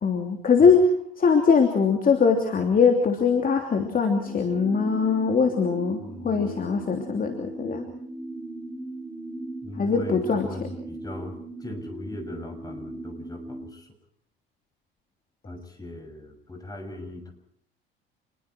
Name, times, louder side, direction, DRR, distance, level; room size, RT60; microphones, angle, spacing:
voice 1, 0.0-7.8 9.8-10.7, left 5 dB, 30° left, 4 dB, 3.1 m, -22 dB
sound 1, 4.3-13.6, right 2 dB, 10° right, 7.3 m, -38 dB
voice 2, 6.0-6.6 9.6-13.9 15.4-17.3, left 1 dB, 10° left, 5 dB, 6.9 m, -39 dB
28.0 x 21.5 x 4.6 m, 0.64 s
figure-of-eight pair, 60°, 30 cm